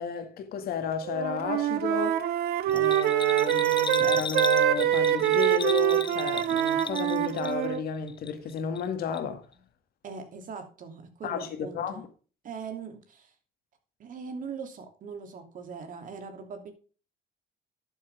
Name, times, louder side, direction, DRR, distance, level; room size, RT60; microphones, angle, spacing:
voice 1, 0.0-2.2 2.6-9.5 11.2-12.1, left 6 dB, 65° left, 2.1 m, -32 dB
Wind instrument woodwind instrument, 1.0-7.8, right 12 dB, 70° right, 1.2 m, -25 dB
Bell, 2.7-7.8 8.1-8.9 9.1-9.2, left 6 dB, 30° left, 0.8 m, -36 dB
voice 2, 10.0-12.0 12.4-13.3 14.0-16.7, right 5 dB, 50° right, 2.9 m, -41 dB
11.5 x 7.5 x 3.5 m
cardioid pair, 110°, 17 cm